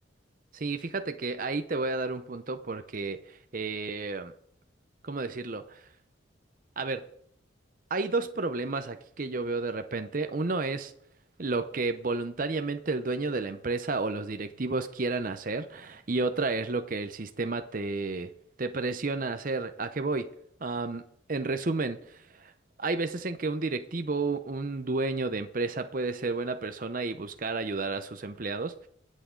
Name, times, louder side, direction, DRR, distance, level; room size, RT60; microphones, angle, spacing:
voice 1, 0.5-4.3 5.0-5.8 6.8-7.0 7.9-10.9 11.4-18.3 18.6-20.3 20.6-21.0 21.3-22.5 22.8-28.9, right 3 dB, 45° right, 8 dB, 0.7 m, -31 dB
22.0 x 8.4 x 3.8 m, 0.68 s
head